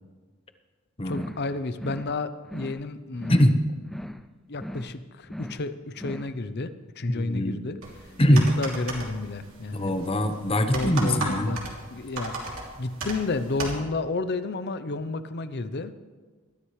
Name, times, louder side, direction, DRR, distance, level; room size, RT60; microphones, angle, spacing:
voice 1, 1.0-3.5 4.5-7.8 8.3-9.9 10.6-11.6 11.9-15.9, left 3 dB, 50° left, 12 dB, 0.7 m, -31 dB
sound 1, 1.0-1.5 1.7-2.2 2.4-2.9 3.1-3.6 3.8-4.3 4.5-5.0 5.2-5.7 5.9-6.4, equal, ahead, 0.4 m, -39 dB
voice 2, 3.3-3.6 7.1-7.6 8.2-8.5 9.7-11.5, equal, 25° left, 7 dB, 0.9 m, -22 dB
sound 2, 7.8-13.8, right 2 dB, 80° right, 2.9 m, -36 dB
20.5 x 13.0 x 3.2 m, 1.4 s
head